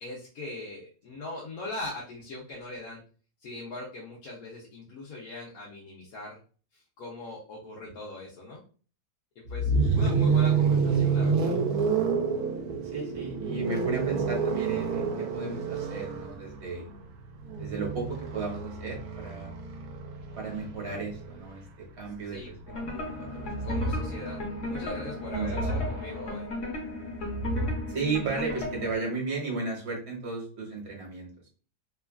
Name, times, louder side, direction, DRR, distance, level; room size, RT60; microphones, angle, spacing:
voice 1, 0.0-3.0 3.4-6.4 6.7-8.6 9.4-11.5 22.3-22.5 23.6-24.4 24.7-26.5, left 2 dB, 75° left, -5 dB, 1.2 m, -40 dB
sound 1, 9.5-21.4 22.7-26.3, right 5 dB, 80° right, 1.1 m, -29 dB
voice 2, 12.9-16.9 17.6-19.5 20.3-22.5 22.9-23.6 25.3-25.9 27.9-31.3, right 4 dB, 50° right, -1 dB, 1.2 m, -34 dB
sound 2, 22.7-29.0, left 1 dB, 55° left, 1.1 m, -33 dB
3.1 x 2.3 x 2.3 m, 0.38 s
omnidirectional pair, 1.6 m